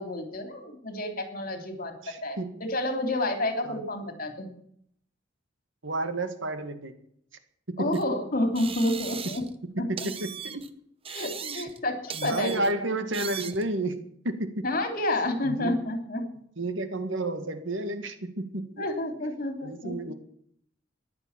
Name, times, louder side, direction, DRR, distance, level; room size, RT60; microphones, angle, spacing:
voice 1, 0.0-1.9 2.2-4.5 7.8-9.4 9.8-9.9 11.1-12.6 14.6-16.3 18.8-20.0, left 1 dB, 50° left, 6 dB, 3.1 m, -29 dB
voice 2, 2.0-2.6 3.6-3.7 5.8-6.9 7.7-8.0 9.9-10.7 11.4-11.6 12.1-14.0 14.2-14.6 15.4-15.7 16.6-18.9 19.2-20.1, right 2 dB, 85° right, 9 dB, 1.8 m, -31 dB
sound 1, 7.9-8.0 8.5-9.6 10.0-10.7 11.0-11.8 12.1-12.7 13.1-13.7, right 7 dB, 30° right, 1.0 m, -38 dB
14.0 x 10.5 x 7.4 m, 0.68 s
head